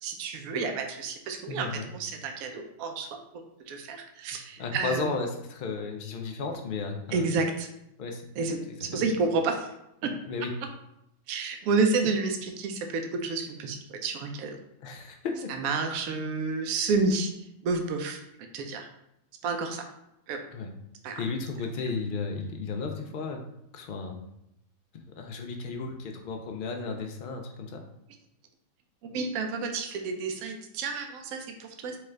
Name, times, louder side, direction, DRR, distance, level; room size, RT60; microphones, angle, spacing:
voice 1, 0.0-3.1 3.7-5.1 7.1-7.7 8.4-9.7 10.0-10.1 11.3-14.6 15.6-17.3 17.6-18.2 18.5-18.9 19.4-19.9 20.3-20.4 21.0-21.2 29.0-32.0, right 4 dB, 80° right, 5 dB, 1.0 m, -30 dB
voice 2, 1.3-1.9 4.6-7.3 8.0-8.2 8.9-9.0 10.3-10.5 14.8-15.5 20.5-20.7 21.2-23.4 23.7-24.2 25.2-27.8, left 4 dB, 75° left, 3 dB, 0.4 m, -34 dB
4.4 x 2.4 x 3.2 m, 0.81 s
omnidirectional pair, 1.5 m